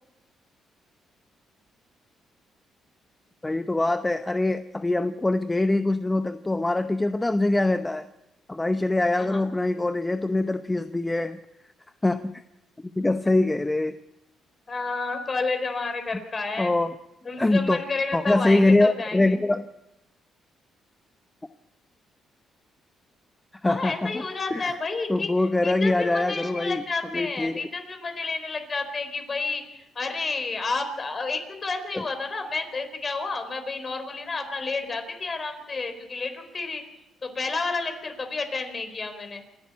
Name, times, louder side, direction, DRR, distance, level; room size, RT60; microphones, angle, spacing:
voice 1, 3.4-8.1 8.5-11.4 12.0-12.4 13.0-14.0 16.6-16.9 17.4-17.8 18.1-19.7 23.6-24.3 24.5-24.8 25.1-26.9 27.1-27.6 31.9-32.0, left 2 dB, 15° left, 9 dB, 0.8 m, -23 dB
voice 2, 14.7-16.7 17.2-19.4 23.7-25.3 25.6-29.6 30.0-36.8 37.2-39.4, left 3 dB, 35° left, 7 dB, 4.1 m, -30 dB
27.5 x 11.5 x 8.5 m, 0.94 s
cardioid pair, 90°, 0 cm